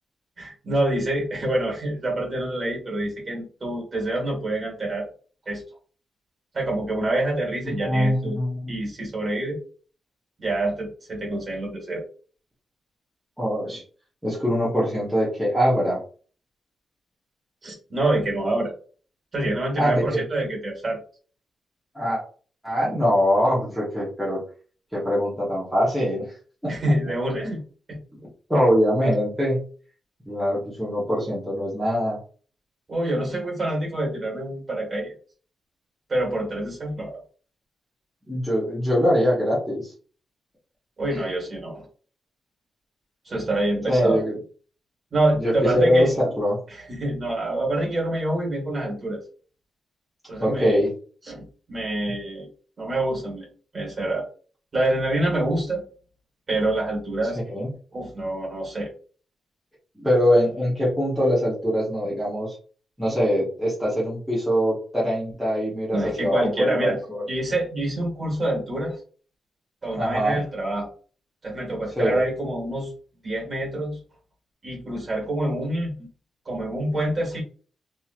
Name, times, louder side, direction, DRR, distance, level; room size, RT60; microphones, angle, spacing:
voice 1, 0.4-5.1 5.4-5.6 6.5-8.4 8.7-9.6 10.4-12.0 17.6-18.7 19.3-21.0 26.7-27.6 27.9-28.0 32.9-35.1 36.1-37.2 41.0-41.8 43.2-44.2 45.1-46.1 46.7-49.2 50.3-50.8 51.3-52.5 52.8-53.5 53.7-54.2 54.7-55.8 56.5-57.4 57.9-58.9 65.9-67.0 67.3-69.0 69.8-70.9 71.4-72.9 73.2-74.0 74.6-76.1 76.4-77.4, right 1 dB, 30° right, -1 dB, 1.4 m, -26 dB
voice 2, 7.8-8.7 13.4-13.8 14.2-16.0 19.8-20.2 21.9-22.2 22.6-24.4 24.9-26.3 26.6-26.7 27.4-27.5 28.5-29.6 30.3-32.2 38.3-39.9 41.1-41.2 43.9-44.4 45.4-46.6 50.4-50.9 57.5-57.7 60.0-62.6 63.0-67.2 69.9-70.4 72.0-72.2, equal, ahead, -8 dB, 1.0 m, -23 dB
2.9 x 2.8 x 2.4 m, 0.41 s
wide cardioid pair, 175°, 0 cm